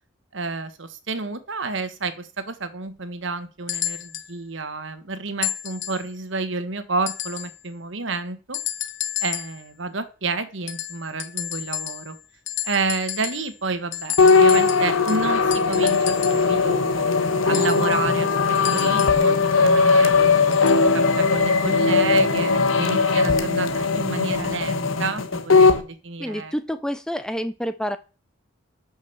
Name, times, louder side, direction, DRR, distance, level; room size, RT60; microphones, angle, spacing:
voice 1, 0.3-8.6 9.2-12.2 12.6-17.1 17.4-26.5, right 3 dB, 70° right, 11 dB, 1.4 m, -30 dB
sound 1, 3.7-4.3 5.4-6.1 7.1-7.6 8.5-9.6 10.7-12.2 12.5-13.5 13.9-16.5 17.5-19.3 20.5-20.9 21.8-21.9, left 12 dB, 65° left, 0.9 m, -32 dB
sound 2, 14.2-25.8, left 4 dB, 80° left, 1.3 m, -19 dB
voice 2, 26.2-28.0, equal, 5° left, 11 dB, 0.5 m, -28 dB
8.6 x 6.3 x 7.1 m, 0.35 s
head